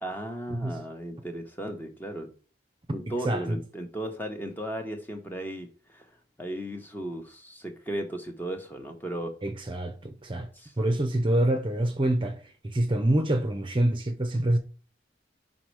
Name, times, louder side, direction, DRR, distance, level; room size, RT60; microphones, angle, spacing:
voice 1, 0.0-2.3 2.9-6.1 6.4-9.3 10.5-10.7, right 1 dB, 10° left, 1.1 m, -36 dB
voice 2, 3.2-3.6 9.4-10.5 10.8-12.4 12.6-14.6, right 1 dB, 25° right, 0.7 m, -26 dB
5.9 x 4.2 x 4.7 m
head